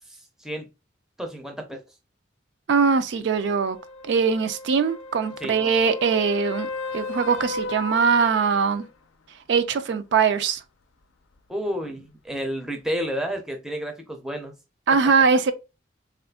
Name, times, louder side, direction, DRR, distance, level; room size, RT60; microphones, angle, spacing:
voice 1, 0.1-0.7 1.2-1.8 5.4-5.6 11.5-14.5, equal, ahead, 0.5 m, -31 dB
voice 2, 2.7-3.8 4.0-6.7 6.9-8.8 9.5-10.6 14.9-15.5, right 5 dB, 60° right, 0.3 m, -21 dB
sound 1, 3.2-8.9 13.0-13.1, left 3 dB, 85° left, 0.4 m, -36 dB
3.5 x 2.4 x 2.2 m
head